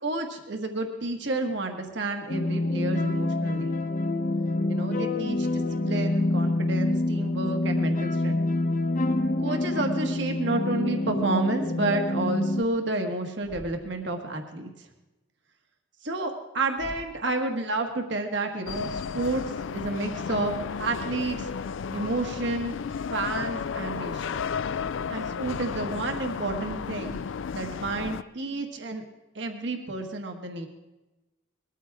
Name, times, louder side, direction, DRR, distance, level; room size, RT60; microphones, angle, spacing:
voice 1, 0.0-3.8 4.7-8.4 9.4-14.9 16.0-19.4 19.7-20.5 20.8-21.5 21.9-22.7 23.1-24.3 25.1-27.2 27.5-29.0 29.3-30.7, right 2 dB, 60° right, 4 dB, 1.5 m, -30 dB
sound 1, 2.3-12.6, left 2 dB, 40° left, 0.8 m, -26 dB
Thump thud, 13.4-14.1 16.8-17.3, equal, 5° right, 0.7 m, -45 dB
sound 2, 18.7-28.2, left 6 dB, 70° left, 0.4 m, -33 dB
21.0 x 14.0 x 3.6 m, 1.0 s
head